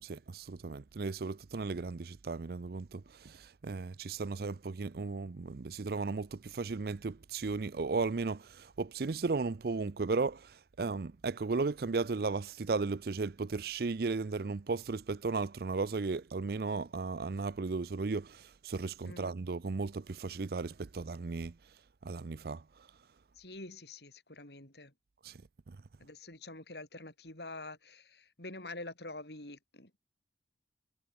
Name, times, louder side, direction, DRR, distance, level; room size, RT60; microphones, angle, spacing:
voice 1, 0.0-21.6 22.0-22.6 25.2-25.8, right 4 dB, 60° right, 0.5 m, -35 dB
voice 2, 19.0-19.3 23.3-24.9 26.0-30.0, left 2 dB, 70° left, 6.7 m, -46 dB
head